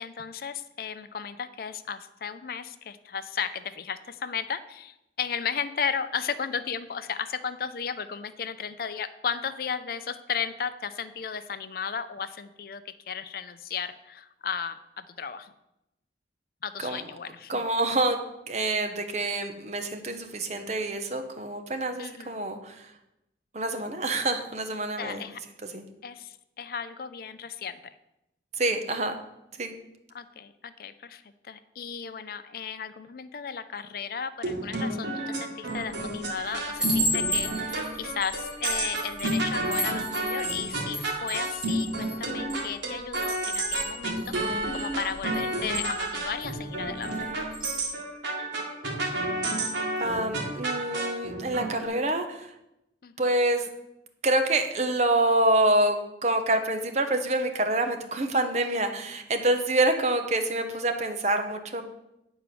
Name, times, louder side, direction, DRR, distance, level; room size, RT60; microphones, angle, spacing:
voice 1, 0.0-15.5 16.6-17.6 22.0-22.3 25.0-25.4 26.0-27.8 30.1-47.2 53.0-53.1, left 7 dB, 55° left, 12 dB, 0.4 m, -35 dB
voice 2, 17.5-18.2 18.5-22.9 23.5-25.2 25.6-25.8 28.5-29.1 29.6-29.7 50.0-52.5 53.2-53.7 54.2-61.8, right 2 dB, 40° right, 6 dB, 0.9 m, -26 dB
sound 1, 34.4-51.9, right 2 dB, 80° right, 1.9 m, -31 dB
Chime, 35.7-36.0 36.4-42.7 43.2-46.5 47.0-47.2 47.5-47.8, equal, 5° right, 1.8 m, -34 dB
9.2 x 4.5 x 6.9 m, 0.88 s
head